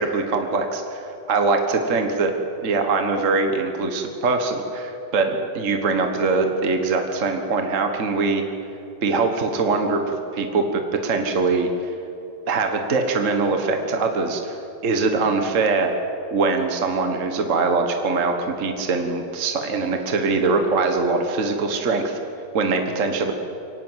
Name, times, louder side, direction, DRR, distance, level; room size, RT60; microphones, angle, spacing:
voice 1, 0.0-2.3 2.6-8.5 9.0-11.7 12.5-14.6 14.8-16.0 16.3-22.2 22.5-23.3, right 3 dB, 45° right, 4 dB, 1.8 m, -22 dB
24.5 x 18.0 x 8.1 m, 2.8 s
omnidirectional pair, 2.0 m